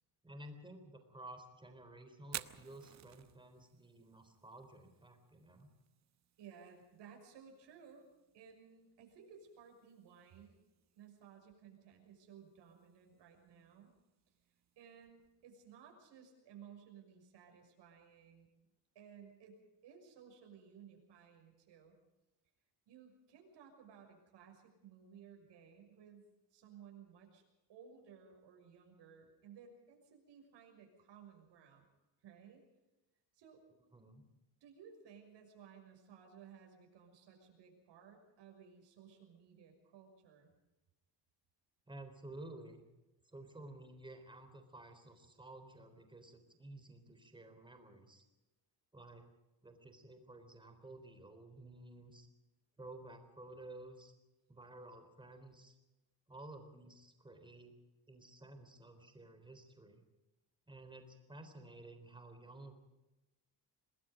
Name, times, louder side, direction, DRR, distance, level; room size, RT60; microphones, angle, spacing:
voice 1, 0.2-5.7 33.9-34.3 41.9-42.8 43.3-48.2 48.9-49.3 49.6-52.3 52.8-54.1 54.5-55.8 56.3-57.7 58.1-60.0 60.7-62.7, right 2 dB, 10° right, 7 dB, 3.7 m, -53 dB
Fire, 2.2-16.1, right 10 dB, 40° right, 0.8 m, -56 dB
voice 2, 6.4-8.0 8.3-10.6 10.9-13.9 14.4-18.5 18.9-22.0 22.9-31.9 32.2-32.6 33.3-33.6 34.6-40.5, right 7 dB, 70° right, 3 dB, 6.3 m, -58 dB
27.0 x 20.0 x 5.1 m, 1.0 s
cardioid pair, 150°, 44 cm